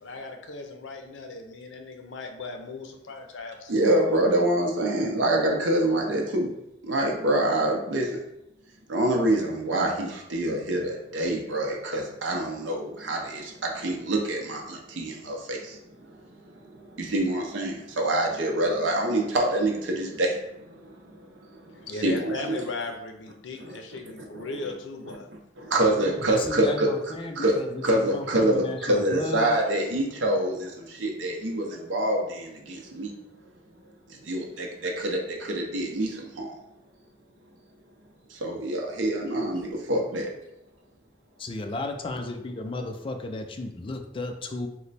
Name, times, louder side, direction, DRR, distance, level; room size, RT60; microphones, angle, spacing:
voice 1, 0.0-4.1 21.7-25.3, left 3 dB, 85° left, 4 dB, 0.5 m, -37 dB
voice 2, 3.7-6.5 6.8-8.2 8.9-15.8 16.3-20.6 20.8-22.6 23.6-23.7 24.3-24.4 25.6-26.9 27.4-27.5 27.8-33.1 34.1-36.5 38.3-40.3, right 1 dB, 80° right, 0 dB, 0.6 m, -26 dB
voice 3, 26.0-29.5 38.9-39.0 39.5-39.6 41.4-44.7, left 2 dB, 30° left, 4 dB, 0.3 m, -34 dB
3.1 x 2.1 x 4.0 m, 0.85 s
head